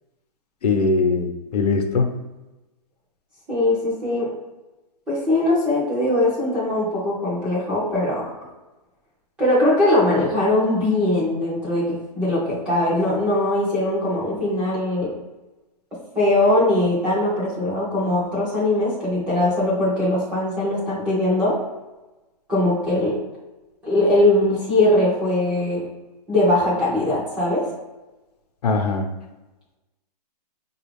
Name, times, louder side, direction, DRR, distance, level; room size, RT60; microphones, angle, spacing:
voice 1, 0.6-2.1 28.6-29.1, left 4 dB, 70° left, 4 dB, 0.7 m, -21 dB
voice 2, 3.5-4.3 5.1-8.3 9.4-15.1 16.1-21.6 22.5-23.2 23.8-25.8 26.3-27.7, left 1 dB, 5° right, -9 dB, 0.4 m, -21 dB
5.3 x 2.4 x 3.3 m, 1.1 s
hypercardioid pair, 175°, 21 cm